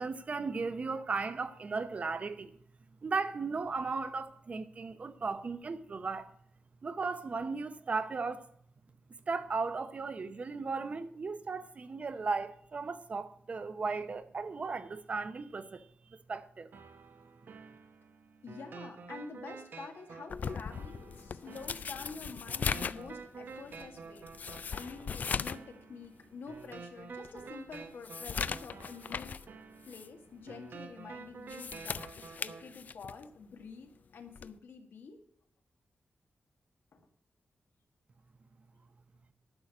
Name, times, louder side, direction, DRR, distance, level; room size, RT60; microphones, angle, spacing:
voice 1, 0.0-2.6 3.0-6.3 6.8-8.5 9.3-16.7, right 4 dB, 40° right, 0.8 m, -36 dB
sound 1, 16.7-32.7, right 5 dB, 70° right, 1.1 m, -50 dB
voice 2, 18.4-24.3 24.7-29.5 29.9-35.2 36.9-37.0, left 4 dB, 80° left, 1.9 m, -48 dB
sound 2, 20.3-25.7 26.0-26.1 26.7-26.8 27.2-29.5 29.8-30.1 31.3-33.3 34.4-34.6, left 6 dB, 50° left, 0.3 m, -38 dB
11.0 x 6.5 x 8.3 m
wide cardioid pair, 155°, 4 cm